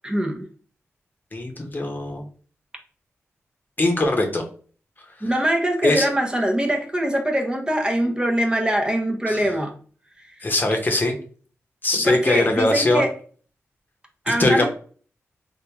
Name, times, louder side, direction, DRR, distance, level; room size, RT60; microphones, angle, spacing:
voice 1, 0.0-0.5 5.2-9.7 12.0-13.1 14.3-14.7, right 1 dB, 15° right, 2 dB, 0.6 m, -23 dB
voice 2, 1.3-2.3 3.8-4.4 5.8-6.1 9.3-9.4 10.4-11.1 11.8-13.1 14.4-14.7, left 2 dB, 40° left, 3 dB, 0.8 m, -21 dB
3.4 x 2.5 x 2.9 m, 0.43 s
cardioid pair, 60°, 5 cm